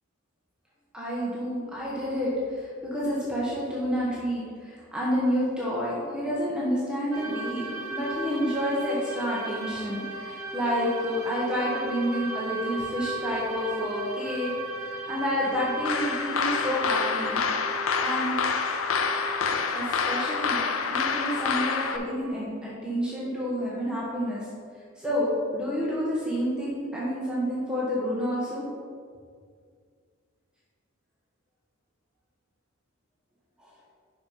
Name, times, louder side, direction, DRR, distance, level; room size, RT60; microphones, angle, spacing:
voice 1, 0.9-14.5 14.8-17.4 18.0-18.3 19.7-20.6 20.9-24.4 25.0-28.6, equal, 5° right, -7 dB, 1.2 m, -29 dB
sound 1, 7.1-22.3, right 2 dB, 90° right, 0.9 m, -37 dB
sound 2, 15.9-22.0, left 5 dB, 75° left, 0.5 m, -27 dB
5.9 x 5.6 x 5.0 m, 2.1 s
head